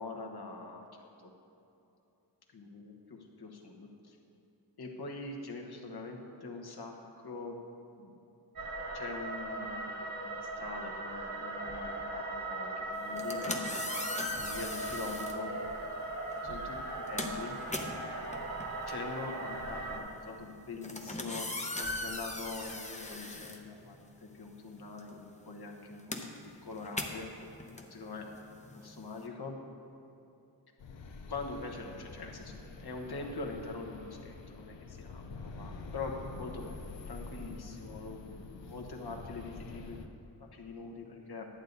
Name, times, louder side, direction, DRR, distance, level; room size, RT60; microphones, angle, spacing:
voice 1, 0.0-1.3 2.5-4.2 4.8-7.6 7.9-8.2 8.9-13.8 14.2-15.5 16.4-16.8 17.1-17.6 18.9-21.5 21.8-26.2 26.6-27.3 27.9-28.3 28.7-29.6 31.3-40.0 40.4-41.5, left 3 dB, 60° left, 1 dB, 1.3 m, -43 dB
sound 1, 8.6-20.0, right 2 dB, 50° right, 1.7 m, -39 dB
sound 2, 13.0-15.4 16.3-16.5 16.8-24.3 24.6-29.3, left 2 dB, 15° left, 0.8 m, -40 dB
sound 3, 30.8-40.1, left 3 dB, 85° left, 0.7 m, -46 dB
11.5 x 8.1 x 4.0 m, 2.8 s
wide cardioid pair, 85°, 43 cm